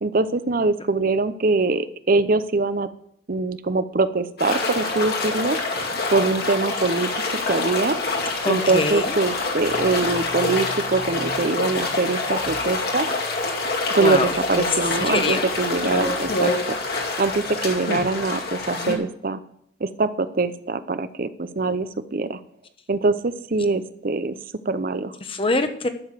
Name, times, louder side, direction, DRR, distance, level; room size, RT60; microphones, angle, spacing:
voice 1, 0.0-2.9 3.3-5.6 6.1-8.0 8.5-13.1 13.9-19.4 19.8-22.4 22.9-24.4 24.6-25.1, right 3 dB, 55° right, 13 dB, 0.7 m, -23 dB
sound 1, 4.4-18.9, left 3 dB, 60° left, 2.3 m, -26 dB
voice 2, 8.4-9.1 14.0-14.7 15.0-15.4 25.2-25.9, left 2 dB, 30° left, 8 dB, 1.1 m, -24 dB
11.5 x 7.0 x 7.6 m, 0.69 s
head